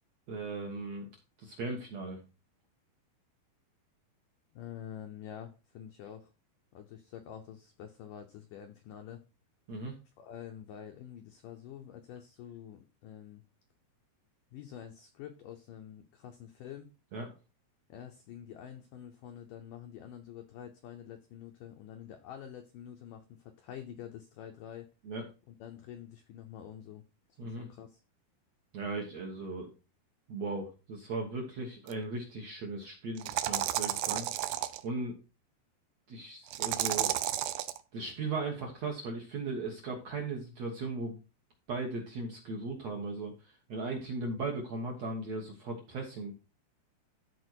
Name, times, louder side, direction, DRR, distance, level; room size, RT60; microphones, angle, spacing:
voice 1, 0.3-1.1 1.4-2.2 9.7-9.9 17.1-17.3 25.0-25.2 27.4-27.6 28.7-29.7 30.3-34.3 34.8-35.2 36.1-37.2 37.9-41.1 41.7-46.3, right 3 dB, 65° right, 0 dB, 1.8 m, -37 dB
voice 2, 4.5-6.3 6.7-9.2 10.2-13.4 14.5-16.9 17.9-24.9 25.5-27.0 27.3-28.0, left 10 dB, 80° left, 5 dB, 1.9 m, -47 dB
sound 1, 31.9-32.0 33.2-34.8 36.5-37.8, right 14 dB, 80° right, 2.1 m, -32 dB
13.5 x 4.5 x 4.5 m, 0.31 s
omnidirectional pair, 4.9 m